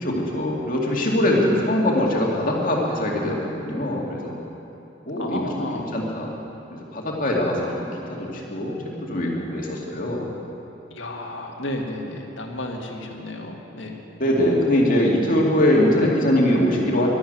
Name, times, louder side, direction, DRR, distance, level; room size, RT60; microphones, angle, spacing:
voice 1, 0.0-4.3 5.1-5.4 5.7-6.3 6.7-10.3 14.2-17.1, left 1 dB, 45° left, -2 dB, 2.4 m, -22 dB
voice 2, 5.2-5.9 10.9-14.0, left 1 dB, 75° left, 1 dB, 1.8 m, -32 dB
12.0 x 12.0 x 9.2 m, 2.9 s
head